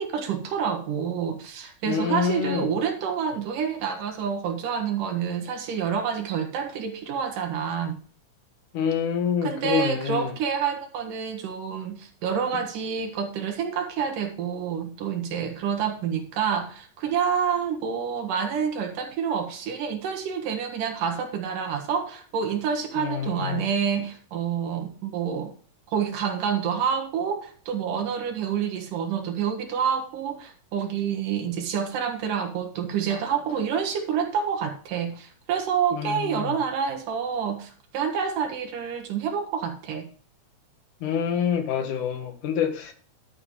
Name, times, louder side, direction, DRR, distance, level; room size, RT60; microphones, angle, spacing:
voice 1, 0.0-8.0 9.4-25.5 25.9-40.1, right 7 dB, 90° right, 4 dB, 3.2 m, -28 dB
voice 2, 1.9-2.7 8.7-10.4 23.0-23.6 35.9-36.6 41.0-42.9, left 7 dB, 75° left, 7 dB, 3.1 m, -27 dB
12.0 x 7.0 x 4.7 m, 0.43 s
omnidirectional pair, 3.6 m